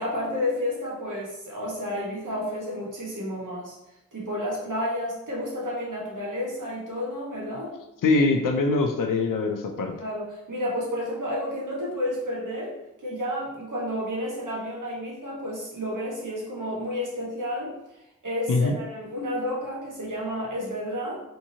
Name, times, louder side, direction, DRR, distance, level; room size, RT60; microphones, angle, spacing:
voice 1, 0.0-3.7 4.1-7.7 10.0-12.7 13.0-17.7 18.2-21.2, left 1 dB, 75° right, -5 dB, 1.2 m, -31 dB
voice 2, 8.0-9.9 18.5-18.7, left 3 dB, 80° left, 3 dB, 0.5 m, -23 dB
3.5 x 2.8 x 2.7 m, 0.89 s
cardioid pair, 40°, 32 cm